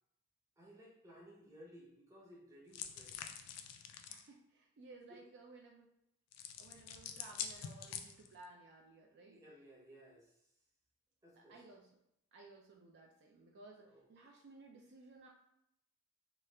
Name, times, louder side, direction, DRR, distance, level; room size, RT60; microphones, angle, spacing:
voice 1, 0.6-3.3 5.1-5.2 9.3-10.5 11.2-11.6 13.8-14.0, equal, 15° right, -3 dB, 0.7 m, -58 dB
sound 1, 2.7-4.3 6.3-8.4, left 8 dB, 85° left, 0.3 m, -46 dB
voice 2, 4.1-5.9 6.6-9.4 11.3-11.9 12.3-15.3, right 3 dB, 50° right, 0 dB, 0.3 m, -58 dB
3.0 x 2.3 x 3.2 m, 0.78 s
head